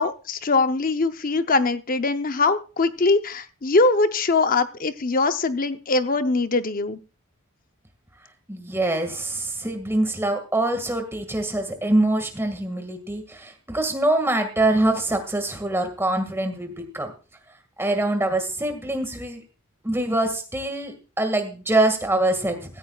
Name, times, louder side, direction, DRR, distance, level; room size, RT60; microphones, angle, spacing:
voice 1, 0.0-7.0, left 3 dB, 40° left, 10 dB, 0.7 m, -22 dB
voice 2, 8.5-17.1 17.8-19.4 19.8-22.8, right 1 dB, 10° right, 6 dB, 1.9 m, -24 dB
16.5 x 14.5 x 2.4 m, 0.34 s
head